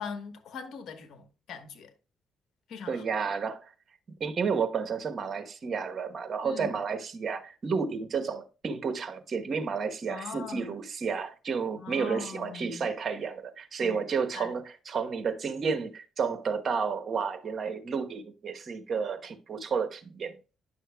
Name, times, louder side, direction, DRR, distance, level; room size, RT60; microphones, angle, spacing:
voice 1, 0.0-1.9 2.7-3.0 6.4-6.8 10.1-10.8 11.8-12.9 13.8-14.0 14.3-14.5, left 5 dB, 75° left, 1.1 m, -41 dB
voice 2, 2.9-3.7 4.2-20.3, right 5 dB, 45° right, 1.0 m, -31 dB
10.0 x 6.4 x 2.3 m
cardioid pair, 90°, 0 cm